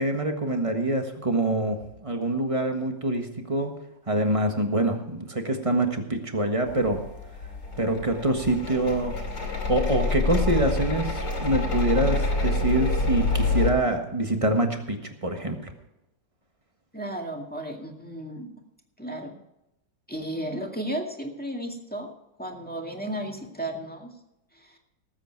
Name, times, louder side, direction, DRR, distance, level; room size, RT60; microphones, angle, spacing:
voice 1, 0.0-3.7 4.1-7.0 7.8-9.1 9.7-15.6, right 1 dB, 20° right, 4 dB, 1.4 m, -25 dB
sound 1, 6.7-13.7, left 3 dB, 70° left, 3.4 m, -27 dB
voice 2, 16.9-18.6 19.0-19.4 20.1-22.1 22.4-24.2 24.5-24.8, right 1 dB, 5° left, 1 dB, 1.9 m, -34 dB
19.0 x 8.3 x 4.6 m, 0.90 s
omnidirectional pair, 2.0 m